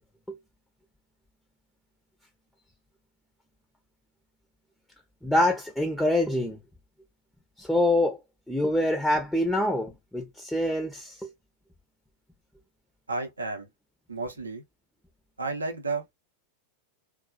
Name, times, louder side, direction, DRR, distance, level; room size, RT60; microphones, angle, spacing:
voice 1, 5.2-6.6 7.6-8.2 8.5-11.3, left 1 dB, ahead, 0.5 m, -25 dB
voice 2, 13.1-13.7 14.1-14.6 15.4-16.1, right 3 dB, 75° right, 0.6 m, -32 dB
2.3 x 2.2 x 2.4 m
figure-of-eight pair, 90°, 0 cm